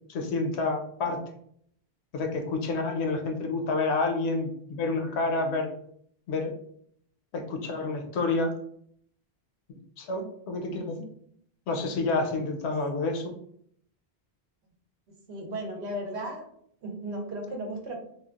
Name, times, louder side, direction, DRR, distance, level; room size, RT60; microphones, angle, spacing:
voice 1, 0.1-1.2 2.1-5.7 6.3-6.5 7.3-8.6 9.7-11.0 11.7-13.4, left 3 dB, 85° left, 4 dB, 0.8 m, -29 dB
voice 2, 15.3-16.4 16.8-18.0, right 1 dB, 90° right, 1 dB, 1.0 m, -35 dB
3.1 x 2.2 x 2.3 m, 0.67 s
omnidirectional pair, 1.1 m